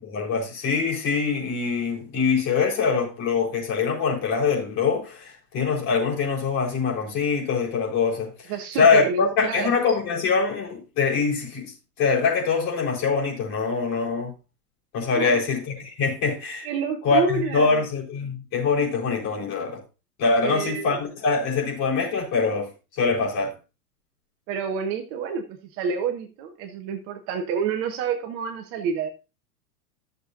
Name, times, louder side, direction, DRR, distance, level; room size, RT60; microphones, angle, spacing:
voice 1, 0.0-11.7 12.0-14.3 14.9-16.7 17.0-19.8 20.2-22.7 23.0-23.5, left 5 dB, 35° left, 4.5 m, -24 dB
voice 2, 8.5-9.8 15.1-15.4 16.6-17.8 20.4-21.0 24.5-25.4 25.7-29.1, right 6 dB, 30° right, 1.0 m, -28 dB
14.0 x 6.9 x 2.6 m
figure-of-eight pair, 100°, 47 cm